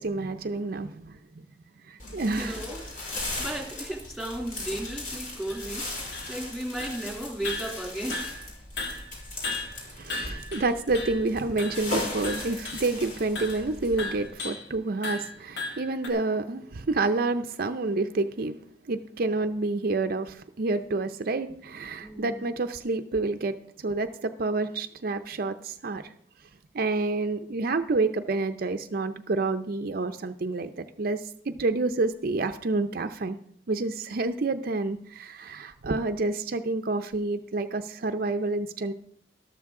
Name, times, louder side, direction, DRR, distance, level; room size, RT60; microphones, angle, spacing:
voice 1, 0.0-1.5 1.8-2.6 10.0-18.6 18.9-26.1 26.7-33.4 33.7-38.9, right 3 dB, 55° right, 7 dB, 0.6 m, -29 dB
sound 1, 2.0-14.3, left 2 dB, 50° left, 5.1 m, -38 dB
voice 2, 2.3-2.8 3.1-8.3 22.0-22.5, right 1 dB, ahead, 0 dB, 2.7 m, -35 dB
sound 2, 2.6-2.7 3.1-3.2 3.8-3.9 4.1-4.2 4.8-5.1 5.5-6.5 6.8-7.1 7.4-8.5 8.8-11.3 11.6-11.9 12.2-12.9 13.4-13.6 14.0-14.7 15.0-16.1, left 3 dB, 85° left, 2.3 m, -36 dB
13.5 x 12.5 x 3.7 m, 0.62 s
head